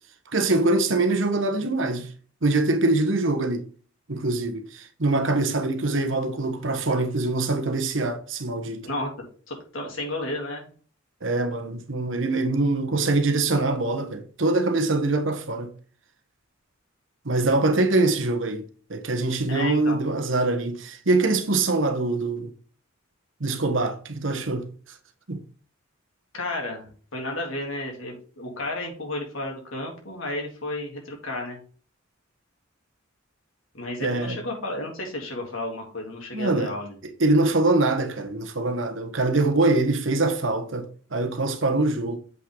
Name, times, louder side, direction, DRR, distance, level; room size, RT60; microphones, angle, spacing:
voice 1, 0.3-2.1 2.4-3.6 4.1-8.9 11.2-15.7 17.2-22.5 23.4-24.7 25.3-25.4 34.0-34.4 36.3-36.7 37.0-42.2, right 2 dB, 65° right, 1.2 m, -24 dB
voice 2, 9.5-10.7 19.5-20.0 26.3-31.6 33.7-37.0, left 2 dB, 70° left, 3.2 m, -32 dB
7.8 x 5.8 x 3.9 m
head